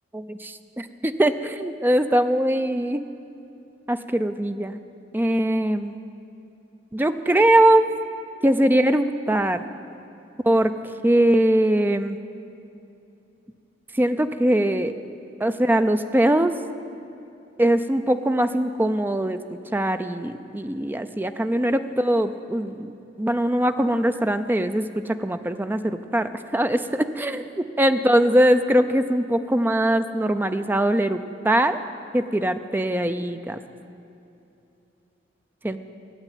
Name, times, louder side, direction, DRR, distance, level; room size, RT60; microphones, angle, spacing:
voice 1, 0.1-3.0 3.9-4.8 5.1-5.9 6.9-7.9 8.4-9.6 10.4-12.2 13.9-14.9 15.4-16.5 17.6-19.4 19.7-31.2 31.4-31.8 32.1-33.6 35.6-35.8, right 1 dB, 10° right, 9 dB, 0.5 m, -21 dB
14.5 x 7.9 x 9.1 m, 2.8 s
head